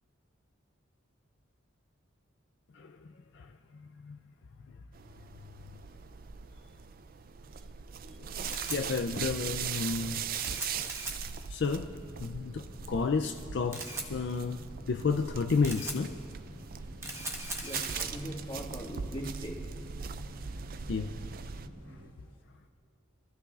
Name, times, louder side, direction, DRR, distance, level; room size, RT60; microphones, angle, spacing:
voice 1, 2.7-4.2 8.2-8.3 8.7-11.1 11.5-11.9 12.2-16.1 20.9-21.1 21.9-22.0, left 4 dB, 60° left, 5 dB, 0.4 m, -32 dB
sound 1, 4.9-21.7, right 7 dB, 45° right, 0.4 m, -40 dB
Camera, 8.1-21.4, right 2 dB, 15° right, 1.1 m, -43 dB
sound 2, 11.7-22.1, equal, 85° right, 1.9 m, -49 dB
voice 2, 17.6-19.8 21.6-21.8, equal, 25° left, -2 dB, 1.9 m, -41 dB
23.5 x 15.0 x 2.4 m, 2.4 s
head